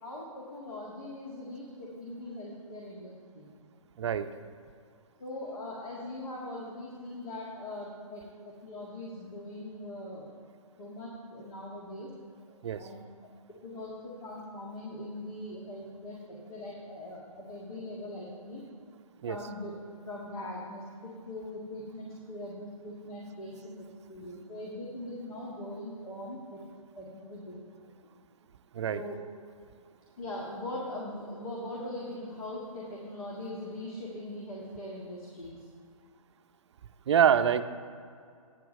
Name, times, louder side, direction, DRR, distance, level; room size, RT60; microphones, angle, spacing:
voice 1, 0.0-3.5 5.2-8.2 8.6-10.3 10.8-12.1 12.8-13.0 13.6-16.2 16.5-18.6 19.3-19.7 20.1-23.7 24.1-26.6 27.0-27.5 28.9-29.2 30.2-35.6, left 1 dB, 75° left, -4 dB, 1.9 m, -41 dB
voice 2, 37.1-37.6, right 8 dB, 50° right, 11 dB, 0.4 m, -25 dB
9.4 x 4.7 x 6.3 m, 2.2 s
hypercardioid pair, 155°, 18 cm